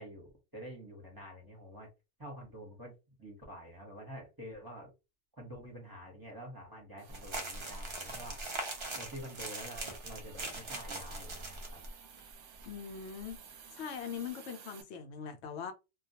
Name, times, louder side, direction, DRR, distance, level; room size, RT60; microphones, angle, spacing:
voice 1, 0.0-1.9 2.2-2.9 3.2-4.9 5.4-8.4 9.0-11.8, equal, 20° right, 0.9 m, -48 dB
Hiss, 7.0-14.8, right 7 dB, 80° right, 0.9 m, -55 dB
sound 1, 7.1-11.9 12.2-12.3 12.6-12.7 13.1-13.3, right 2 dB, 45° right, 0.3 m, -41 dB
voice 2, 12.6-15.7, left 7 dB, 70° left, 0.8 m, -42 dB
2.3 x 2.2 x 2.8 m
omnidirectional pair, 1.2 m